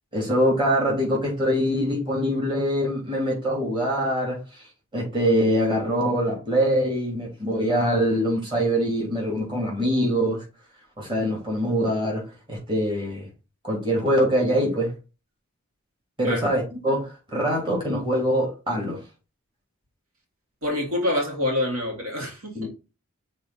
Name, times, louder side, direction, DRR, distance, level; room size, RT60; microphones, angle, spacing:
voice 1, 0.1-4.4 4.9-10.4 11.0-12.2 12.5-13.3 13.6-14.9 16.2-19.0 22.5-22.7, equal, 25° right, 3.1 m, -23 dB
voice 2, 20.6-22.7, left 1 dB, 70° right, 2.4 m, -26 dB
6.3 x 4.1 x 4.2 m
head